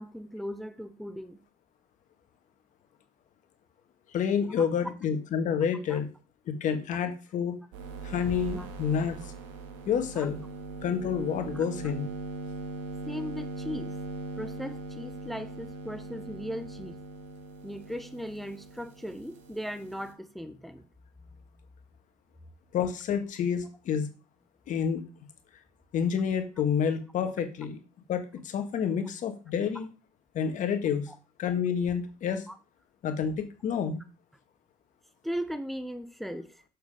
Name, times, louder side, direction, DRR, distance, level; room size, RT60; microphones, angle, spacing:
voice 1, 0.0-1.4 4.6-4.7 5.9-6.0 8.6-8.7 10.1-10.3 11.5-11.6 13.0-13.9 14.4-17.0 17.6-20.9 31.1-31.2 32.5-32.6 35.2-36.6, equal, ahead, 0.9 m, -38 dB
voice 2, 4.1-6.1 6.5-7.6 8.0-9.2 9.9-10.4 10.8-12.1 22.7-24.1 24.7-25.0 25.9-27.8 28.1-29.9 30.3-31.1 31.4-32.5 33.0-34.0, left 7 dB, 55° left, 1.8 m, -29 dB
sound 1, 7.7-20.1, right 2 dB, 90° right, 1.7 m, -40 dB
sound 2, 8.2-10.2, equal, 25° left, 2.2 m, -46 dB
7.4 x 6.7 x 5.0 m
supercardioid pair, 85°, 15 cm